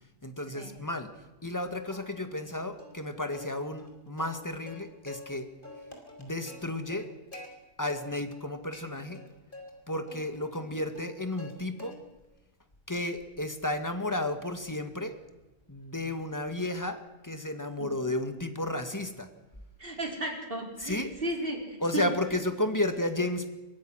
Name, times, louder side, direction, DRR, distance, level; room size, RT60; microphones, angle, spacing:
voice 1, 0.2-1.1 1.4-5.5 6.2-7.1 7.8-9.2 9.9-11.9 12.9-15.2 15.7-19.3 20.8-21.3 21.8-23.5, left 1 dB, 15° left, 8 dB, 1.9 m, -33 dB
Plucked string instrument, 1.9-2.5 2.8-2.9 3.3-5.3 5.6-7.5 7.9-8.4 8.7-9.7 10.1-11.5 11.8-12.3 12.7-16.9, left 2 dB, 40° left, 4.3 m, -49 dB
voice 2, 19.8-22.0, right 1 dB, 40° right, 2 dB, 4.6 m, -34 dB
24.5 x 22.5 x 6.5 m, 1.1 s
omnidirectional pair, 1.4 m